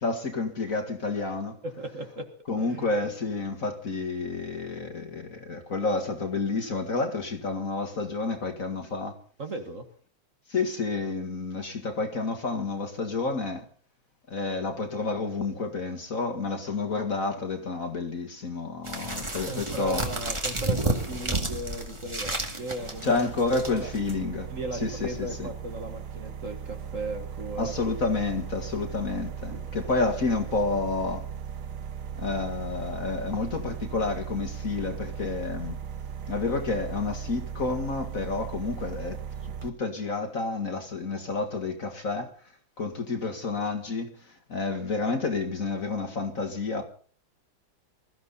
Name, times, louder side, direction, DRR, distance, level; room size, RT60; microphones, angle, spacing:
voice 1, 0.0-1.6 2.5-9.2 10.5-13.7 14.3-20.0 23.0-24.5 24.8-25.5 27.6-31.3 32.2-35.8 36.3-42.3 42.8-46.8, left 3 dB, 40° left, 2.1 m, -30 dB
voice 2, 1.6-2.3 2.6-2.9 9.4-9.9 19.4-23.1 23.7-23.9 24.5-27.7 29.5-29.6, right 2 dB, 40° right, 1.9 m, -36 dB
sound 1, 18.8-24.1, right 2 dB, 15° right, 1.9 m, -31 dB
sound 2, 22.8-39.7, right 7 dB, 55° right, 1.4 m, -38 dB
21.0 x 14.0 x 4.1 m
omnidirectional pair, 2.3 m